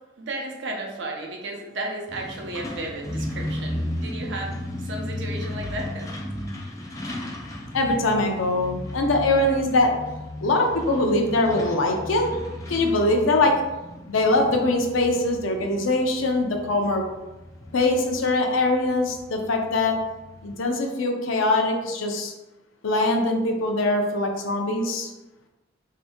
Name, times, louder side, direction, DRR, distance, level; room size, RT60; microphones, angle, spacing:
voice 1, 0.2-6.4, right 2 dB, 70° right, 0 dB, 0.6 m, -34 dB
Truck, 2.1-20.6, left 1 dB, 15° left, 0.4 m, -35 dB
voice 2, 7.7-9.9 10.4-12.3 12.7-13.5 14.1-17.0 17.7-20.0 20.4-22.3 22.8-25.1, left 2 dB, 90° left, 3 dB, 0.5 m, -22 dB
2.8 x 2.6 x 3.5 m, 1.1 s
head